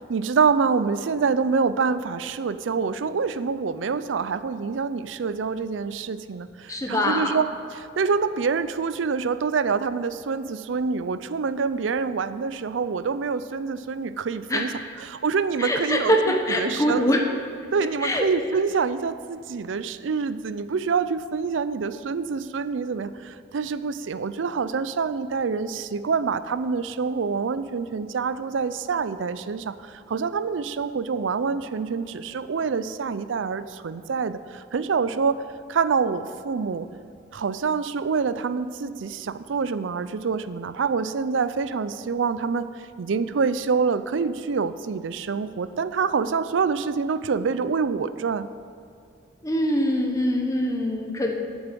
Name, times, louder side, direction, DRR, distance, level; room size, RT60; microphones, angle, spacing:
voice 1, 0.0-14.7 15.0-17.1 17.7-35.4 35.7-36.9 37.3-42.7 43.0-48.5, right 5 dB, 85° right, 14 dB, 0.5 m, -26 dB
voice 2, 6.7-7.4 14.5-14.8 15.6-17.2 18.0-18.3 49.4-51.3, equal, 15° left, 2 dB, 0.9 m, -23 dB
8.8 x 7.1 x 7.5 m, 2.4 s
head